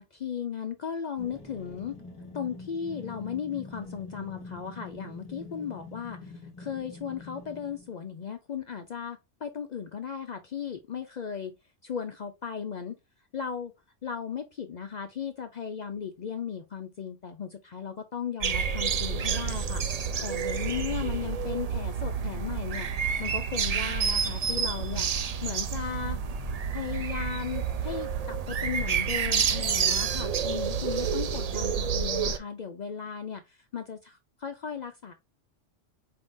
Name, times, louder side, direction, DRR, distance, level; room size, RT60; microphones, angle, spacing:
voice 1, 0.0-2.0 2.3-6.3 6.6-11.5 11.8-13.0 13.3-13.7 14.0-19.8 20.2-22.9 23.2-25.1 25.4-26.2 26.7-35.1, left 7 dB, 65° left, 0.4 m, -36 dB
sound 1, 1.2-7.9, left 3 dB, 25° left, 1.2 m, -45 dB
sound 2, 18.4-32.4, right 6 dB, 65° right, 0.3 m, -29 dB
4.6 x 3.6 x 2.5 m
omnidirectional pair, 1.3 m